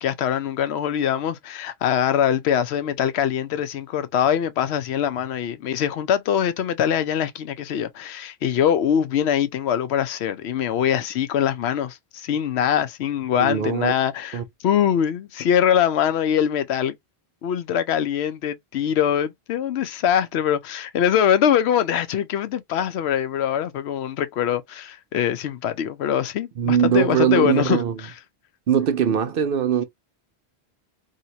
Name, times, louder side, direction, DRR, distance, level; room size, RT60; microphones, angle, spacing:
voice 1, 0.0-16.9 17.4-28.1, left 9 dB, 85° left, 0.8 m, -23 dB
voice 2, 13.4-13.9 14.3-14.4 26.6-28.0 28.7-29.8, right 9 dB, 65° right, 0.7 m, -21 dB
2.8 x 2.8 x 2.7 m
omnidirectional pair, 1.1 m